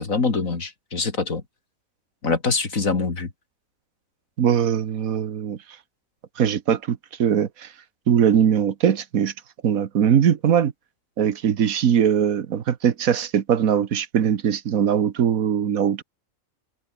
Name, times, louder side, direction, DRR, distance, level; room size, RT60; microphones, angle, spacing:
voice 1, 0.0-1.4 2.2-3.3, left 4 dB, 75° left, 3.1 m, -24 dB
voice 2, 4.4-5.6 6.4-7.7 8.1-9.3 9.6-10.7 11.2-16.0, right 8 dB, 85° right, 1.6 m, -21 dB
open air
omnidirectional pair, 1.4 m